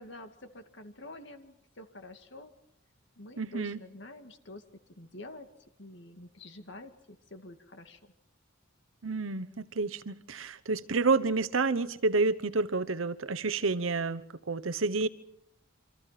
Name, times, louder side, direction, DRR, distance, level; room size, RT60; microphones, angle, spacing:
voice 1, 0.0-2.5 3.2-4.6 4.9-5.5 5.8-8.1, left 2 dB, 60° left, 2.2 m, -48 dB
voice 2, 3.4-3.8 9.0-14.2 14.5-15.1, right 3 dB, 90° right, 1.0 m, -29 dB
27.5 x 25.5 x 5.9 m
head